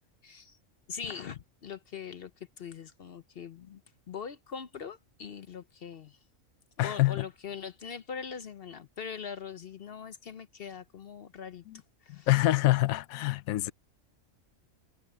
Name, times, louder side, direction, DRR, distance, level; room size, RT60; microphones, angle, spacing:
voice 1, 0.2-0.6 0.9-2.3 2.6-3.8 4.1-6.2 6.8-11.6 12.0-12.3, left 6 dB, 55° left, 0.8 m, -42 dB
voice 2, 6.8-7.2 11.7-11.8 12.3-13.7, left 18 dB, 90° left, 1.0 m, -26 dB
omnidirectional pair, 1.4 m